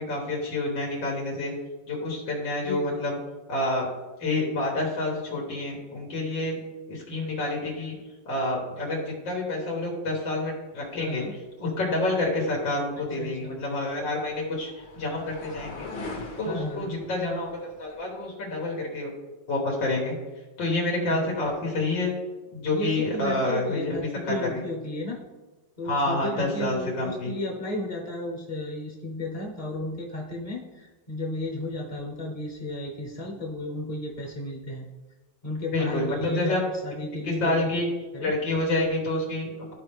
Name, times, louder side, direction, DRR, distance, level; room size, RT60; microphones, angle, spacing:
voice 1, 0.0-1.5 1.9-3.2 3.5-3.9 4.2-6.6 6.9-8.0 8.3-11.2 11.6-15.9 16.4-19.1 19.5-20.1 20.6-22.1 22.5-24.0 24.2-24.6 25.8-27.3 35.7-36.6 37.2-37.9 38.2-39.7, left 2 dB, 90° left, -2 dB, 2.2 m, -28 dB
voice 2, 2.6-3.0 11.0-11.3 13.2-13.6 16.4-17.0 21.1-21.3 22.7-25.2 25.8-34.8 35.4-37.7 38.1-38.3, left 1 dB, 30° left, -1 dB, 0.7 m, -33 dB
sound 1, 13.4-18.4, left 3 dB, 70° left, 2.0 m, -43 dB
12.5 x 4.3 x 3.4 m, 1.2 s
omnidirectional pair, 2.0 m